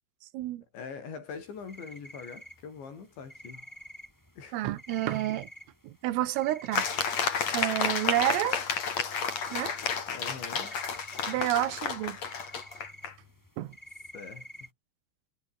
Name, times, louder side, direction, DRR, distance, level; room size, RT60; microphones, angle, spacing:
voice 1, 0.7-3.7 4.4-4.7 10.1-10.8 14.1-14.7, left 5 dB, 60° left, 7.9 m, -43 dB
sound 1, 1.3-14.7, equal, 5° left, 6.5 m, -50 dB
voice 2, 4.5-5.5 5.8-6.9 7.5-8.7 9.5-9.8 11.2-12.2 13.6-13.8, right 15 dB, 85° right, 4.0 m, -29 dB
sound 2, 6.7-13.1, left 6 dB, 35° left, 3.7 m, -31 dB
omnidirectional pair, 5.9 m